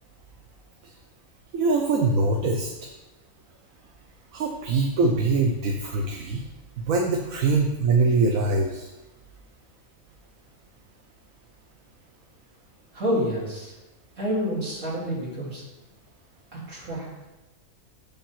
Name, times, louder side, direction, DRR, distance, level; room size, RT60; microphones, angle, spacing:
voice 1, 1.5-2.7 4.3-6.4 6.8-8.9, right 3 dB, 90° right, 2 dB, 1.2 m, -23 dB
voice 2, 12.9-13.7 14.2-15.6 16.5-17.1, equal, 65° right, -6 dB, 3.1 m, -28 dB
6.9 x 5.5 x 5.7 m, 1.1 s
omnidirectional pair, 1.4 m